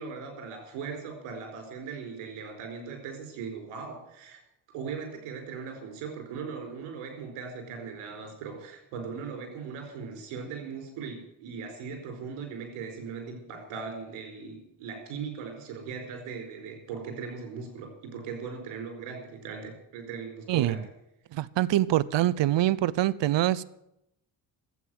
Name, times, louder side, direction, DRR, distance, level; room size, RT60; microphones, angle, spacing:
voice 1, 0.0-4.4 4.7-20.9, right 5 dB, 85° right, 4 dB, 4.6 m, -39 dB
voice 2, 21.3-23.6, right 14 dB, 60° right, 20 dB, 0.8 m, -24 dB
12.0 x 8.7 x 9.4 m, 0.82 s
supercardioid pair, 70°, 49 cm